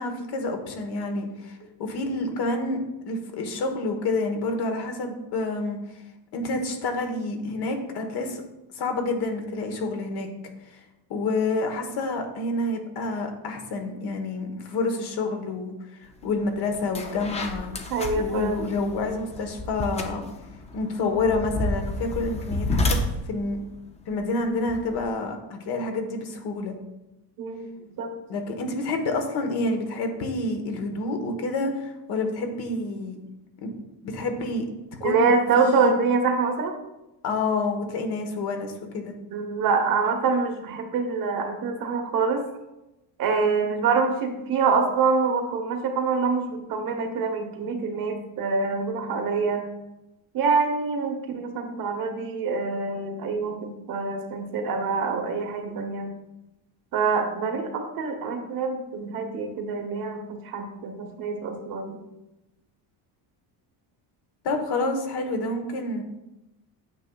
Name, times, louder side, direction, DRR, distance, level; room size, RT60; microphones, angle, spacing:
voice 1, 0.0-2.8 3.1-5.8 6.3-8.4 8.7-10.3 11.1-15.7 16.0-17.7 18.1-20.2 20.7-23.0 23.3-23.6 24.1-26.7 28.3-33.2 33.6-33.8 34.0-34.6 35.0-35.9 37.2-39.1 64.4-66.0, left 2 dB, 55° left, 5 dB, 1.2 m, -28 dB
sound 1, 16.2-16.4 16.7-25.0, left 2 dB, 15° left, 0.4 m, -31 dB
voice 2, 17.9-18.7 27.4-27.7 28.0-28.1 35.0-36.7 39.3-42.4 43.2-49.6 50.3-56.1 56.9-62.0, right 4 dB, 50° right, 4 dB, 1.0 m, -25 dB
8.9 x 6.7 x 2.3 m, 0.95 s
cardioid pair, 165°, 45 cm